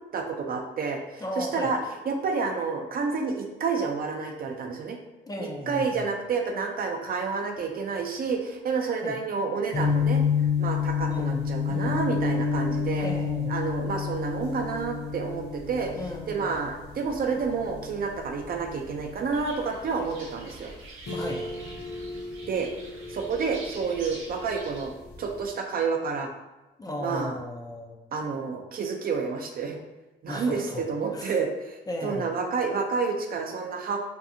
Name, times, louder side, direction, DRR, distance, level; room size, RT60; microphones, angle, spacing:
voice 1, 0.1-1.8 2.1-5.0 5.4-10.2 10.6-13.1 13.5-15.9 16.3-20.7 22.5-22.7 23.1-24.9 25.2-26.3 27.0-27.4 28.1-29.8 30.2-34.0, right 5 dB, 50° right, 2 dB, 0.4 m, -29 dB
voice 2, 1.2-1.7 5.2-6.1 8.9-9.2 11.1-11.5 13.0-13.5 16.0-16.7 21.1-21.4 26.8-28.0 30.3-31.4 31.9-32.4, left 1 dB, 20° left, 0 dB, 0.4 m, -35 dB
sound 1, 9.7-25.4, left 6 dB, 55° left, 0.9 m, -30 dB
sound 2, 19.3-24.8, right 2 dB, 90° right, 0.6 m, -46 dB
2.6 x 2.3 x 2.6 m, 1.1 s
cardioid pair, 90°, 20 cm